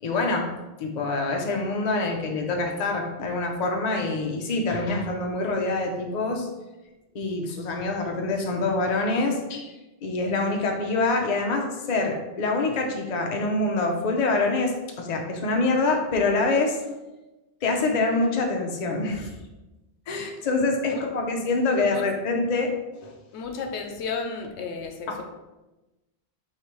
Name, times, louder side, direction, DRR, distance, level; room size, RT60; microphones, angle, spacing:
voice 1, 0.0-0.5 0.8-6.5 7.1-9.7 10.0-14.7 15.0-16.8 17.6-19.3 20.1-22.7 23.0-23.1 25.1-25.2, left 3 dB, 45° left, 2 dB, 0.6 m, -25 dB
voice 2, 23.3-25.2, left 4 dB, 75° left, 4 dB, 0.9 m, -33 dB
4.7 x 3.2 x 3.0 m, 1.1 s
omnidirectional pair, 1.1 m